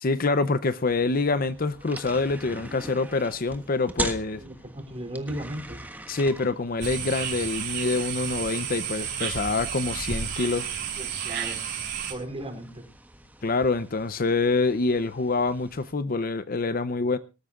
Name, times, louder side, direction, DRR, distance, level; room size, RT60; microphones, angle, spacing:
voice 1, 0.0-4.4 6.1-10.7 13.4-17.2, left 3 dB, 45° left, 0.7 m, -26 dB
sound 1, 0.9-15.9, right 2 dB, 10° right, 1.3 m, -42 dB
voice 2, 4.3-5.8 11.0-11.6 12.1-12.9, right 1 dB, 30° right, 4.4 m, -36 dB
sound 2, 6.8-12.1, right 7 dB, 60° right, 5.1 m, -32 dB
24.5 x 13.5 x 2.4 m
head